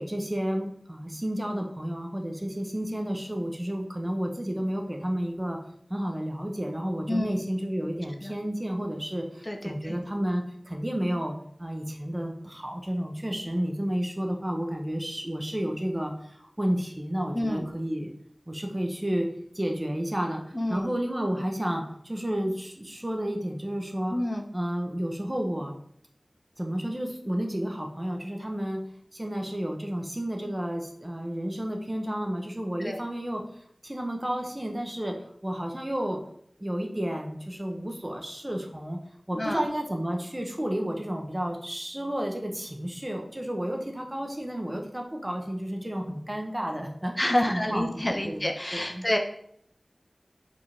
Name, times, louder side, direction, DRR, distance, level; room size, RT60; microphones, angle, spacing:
voice 1, 0.0-5.6 5.9-18.1 18.5-24.2 24.5-25.7 26.6-33.5 33.8-36.3 36.6-39.0 39.3-49.1, equal, 25° right, 2 dB, 1.1 m, -31 dB
voice 2, 9.4-10.0 17.3-17.7 20.5-20.9 24.1-24.4 32.8-33.0 39.3-39.7 47.2-49.2, left 1 dB, 30° left, 3 dB, 0.8 m, -28 dB
5.0 x 3.8 x 4.9 m, 0.67 s
wide cardioid pair, 50°, 0 cm